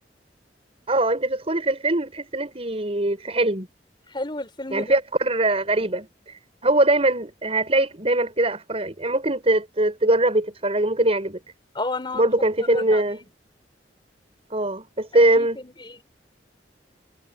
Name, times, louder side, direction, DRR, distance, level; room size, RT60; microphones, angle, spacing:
voice 1, 0.9-3.7 4.7-11.4 12.1-13.2 14.5-15.6, right 1 dB, 35° right, 6.6 m, -22 dB
voice 2, 4.1-5.0 11.7-12.3 12.6-13.0 15.1-16.0, left 2 dB, 25° left, 6.1 m, -32 dB
head